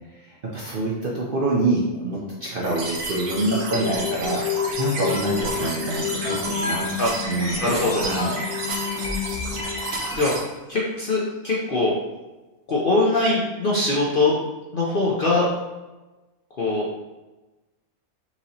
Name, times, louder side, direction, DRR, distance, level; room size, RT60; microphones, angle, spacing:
voice 1, 0.2-6.9 7.2-8.4, right 2 dB, 55° right, -4 dB, 0.6 m, -26 dB
sound 1, 2.6-10.4, right 2 dB, 80° right, 1.4 m, -31 dB
sound 2, 3.2-10.4, left 8 dB, 80° left, 1.3 m, -30 dB
voice 2, 7.6-8.0 10.2-10.3 10.7-12.0 12.7-14.4 14.7-15.5 16.6-16.9, left 2 dB, 55° left, -5 dB, 0.6 m, -22 dB
5.8 x 2.8 x 2.7 m, 1.1 s
omnidirectional pair, 1.6 m